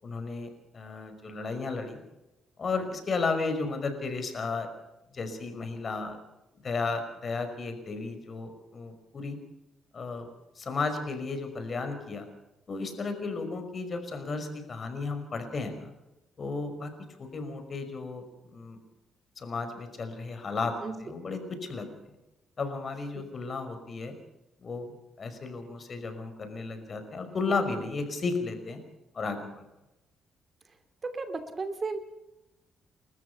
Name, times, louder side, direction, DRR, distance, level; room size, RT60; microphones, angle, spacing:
voice 1, 0.0-0.5 0.7-2.0 2.6-4.7 5.1-6.2 6.6-9.4 9.9-10.3 10.6-12.3 12.7-15.9 16.4-16.9 17.2-18.2 18.5-18.8 19.4-20.7 21.0-21.9 22.6-24.1 24.6-28.8 29.1-29.7, left 4 dB, 40° left, 7 dB, 5.4 m, -33 dB
voice 2, 31.0-32.0, right 4 dB, 35° right, 8 dB, 2.7 m, -34 dB
30.0 x 14.0 x 6.8 m, 0.97 s
cardioid pair, 90°, 0 cm